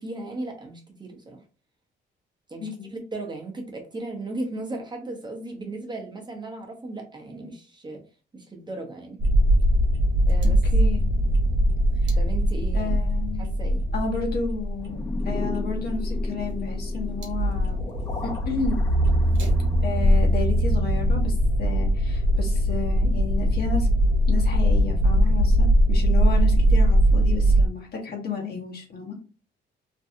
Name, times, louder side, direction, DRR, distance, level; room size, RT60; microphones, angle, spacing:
voice 1, 0.0-1.4 2.5-8.0 8.3-9.2 10.3-10.6 12.1-13.0 13.3-13.8, right 2 dB, 20° right, 1 dB, 0.7 m, -36 dB
sound 1, 9.2-27.7, equal, 70° right, 0.9 m, -21 dB
voice 2, 10.7-11.0 12.7-13.5 13.9-15.0 15.2-17.8 18.2-18.8 19.8-23.9 24.3-29.1, left 4 dB, 50° left, 0 dB, 0.9 m, -32 dB
sound 2, 14.8-20.0, left 1 dB, 15° left, 0.6 m, -38 dB
2.6 x 2.2 x 2.6 m, 0.36 s
cardioid pair, 90°, 20 cm